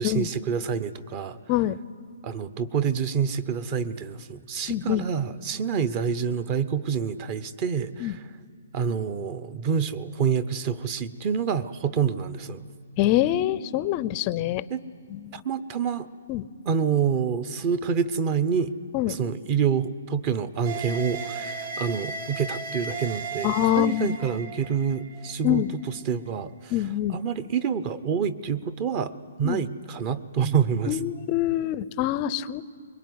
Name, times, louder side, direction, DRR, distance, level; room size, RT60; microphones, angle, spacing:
voice 1, 0.0-1.4 2.2-8.3 8.7-12.6 14.7-14.8 15.3-16.1 16.6-18.7 19.1-31.0, right 7 dB, 30° right, 15 dB, 0.9 m, -27 dB
voice 2, 4.7-5.1 8.0-8.1 13.0-14.6 15.1-15.2 16.3-16.4 18.9-19.2 23.4-24.2 25.4-25.7 26.7-27.2 29.4-29.6 30.9-32.6, left 13 dB, 30° left, 17 dB, 0.6 m, -25 dB
sound 1, 20.6-26.0, right 4 dB, 65° right, 2.8 m, -36 dB
24.5 x 22.0 x 9.6 m, 2.2 s
hypercardioid pair, 160°, 0 cm